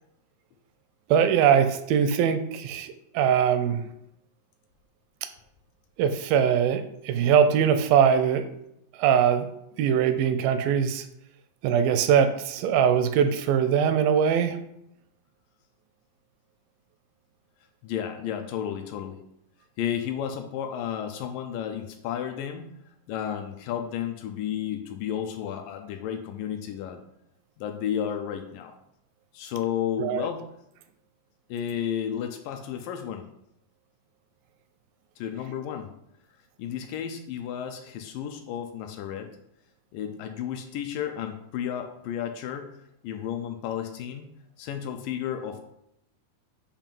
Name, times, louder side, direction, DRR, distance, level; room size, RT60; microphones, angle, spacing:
voice 1, 1.1-3.8 5.2-5.3 6.0-8.5 9.0-9.5 9.8-11.1 11.6-14.6 30.0-30.3, right 8 dB, 85° right, 10 dB, 2.3 m, -22 dB
voice 2, 17.8-19.2 19.8-22.8 23.1-27.0 27.6-28.8 29.3-30.5 31.5-33.3 35.2-35.9 36.6-39.3 39.9-42.8 43.0-45.6, left 9 dB, 80° left, 5 dB, 2.0 m, -32 dB
7.2 x 2.5 x 5.3 m, 0.79 s
omnidirectional pair, 4.1 m